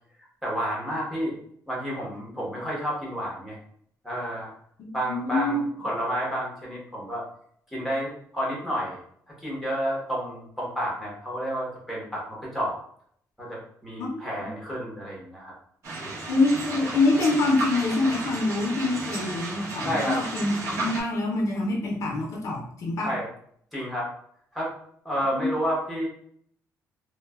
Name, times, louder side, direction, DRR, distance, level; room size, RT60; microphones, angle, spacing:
voice 1, 0.4-1.4 1.7-3.6 4.0-4.5 4.9-7.2 7.7-9.0 9.4-12.7 13.4-15.5 16.0-16.2 19.8-20.2 23.0-23.3 23.7-24.1 24.5-24.7 25.0-26.1, equal, ahead, -5 dB, 0.7 m, -30 dB
voice 2, 4.8-5.6 14.0-14.2 16.3-23.1 25.3-25.5, left 2 dB, 55° left, -1 dB, 0.5 m, -25 dB
sound 1, 15.8-21.0, right 2 dB, 55° right, 0.6 m, -33 dB
3.0 x 2.0 x 2.2 m, 0.64 s
cardioid pair, 180°, 6 cm